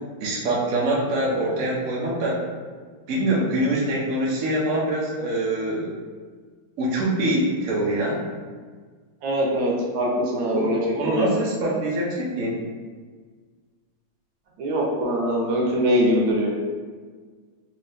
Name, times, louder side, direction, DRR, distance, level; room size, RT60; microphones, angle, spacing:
voice 1, 0.2-2.4 3.1-5.9 6.8-8.2 10.5-12.6, right 1 dB, 60° right, -4 dB, 0.9 m, -24 dB
voice 2, 9.2-11.4 14.6-16.5, equal, 75° right, -2 dB, 1.4 m, -23 dB
3.3 x 2.8 x 3.3 m, 1.5 s
omnidirectional pair, 2.3 m